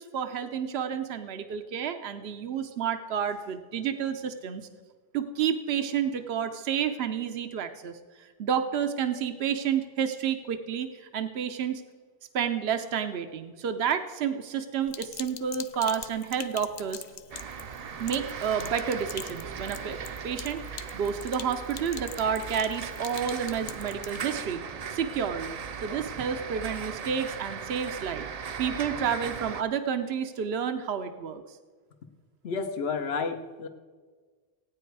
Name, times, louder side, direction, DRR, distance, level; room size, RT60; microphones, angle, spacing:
voice 1, 0.0-4.6 5.1-11.8 12.3-17.0 18.0-20.0 20.2-20.6 20.9-24.6 24.9-28.3 28.6-31.4, right 7 dB, 85° right, 8 dB, 1.0 m, -30 dB
Sink (filling or washing), 14.9-24.2, left 7 dB, 50° left, 0.6 m, -44 dB
sound 1, 17.3-29.6, right 6 dB, 50° right, 0.5 m, -38 dB
voice 2, 32.4-33.7, left 5 dB, 80° left, 8 dB, 1.2 m, -31 dB
16.5 x 9.3 x 4.6 m, 1.5 s
omnidirectional pair, 1.0 m